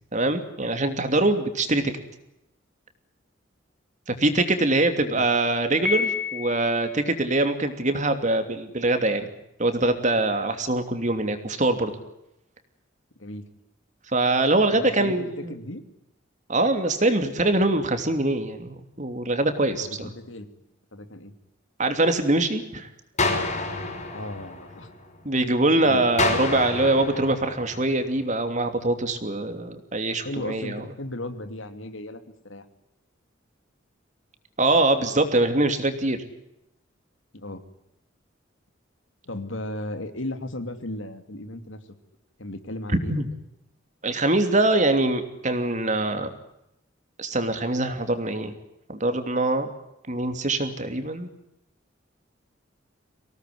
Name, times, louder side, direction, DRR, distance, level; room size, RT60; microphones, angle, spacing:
voice 1, 0.1-1.9 4.2-9.3 9.6-11.9 14.1-15.6 16.5-20.1 21.8-22.9 25.2-30.8 34.6-36.2 42.9-43.3 44.0-46.3 47.2-48.5 48.9-49.7 50.1-51.3, right 2 dB, 40° right, 8 dB, 2.9 m, -23 dB
Piano, 5.9-7.0, left 5 dB, 5° left, 3.5 m, -28 dB
voice 2, 13.2-13.5 14.7-15.8 19.8-20.5 20.9-21.3 24.1-24.9 25.8-26.1 30.2-32.6 37.3-37.6 39.2-41.8 42.4-43.1, left 1 dB, 80° left, 8 dB, 2.7 m, -36 dB
sound 1, 23.2-25.2 26.2-28.2, left 3 dB, 35° left, 5.6 m, -29 dB
25.0 x 18.0 x 9.5 m, 0.86 s
head